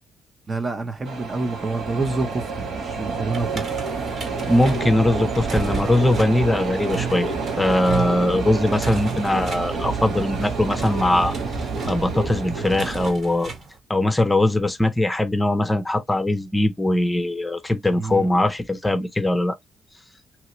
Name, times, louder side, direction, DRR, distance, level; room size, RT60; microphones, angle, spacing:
voice 1, 0.5-3.7 17.9-18.3, right 3 dB, 30° right, 0.7 m, -27 dB
sound 1, 1.1-13.1, right 4 dB, 75° right, 1.2 m, -28 dB
sound 2, 3.3-13.8, right 5 dB, 50° right, 1.5 m, -34 dB
voice 2, 4.5-7.3 7.6-11.3 11.9-13.5 13.9-19.6, left 1 dB, 10° left, 0.7 m, -21 dB
2.9 x 2.8 x 3.0 m
cardioid pair, 90°, 0 cm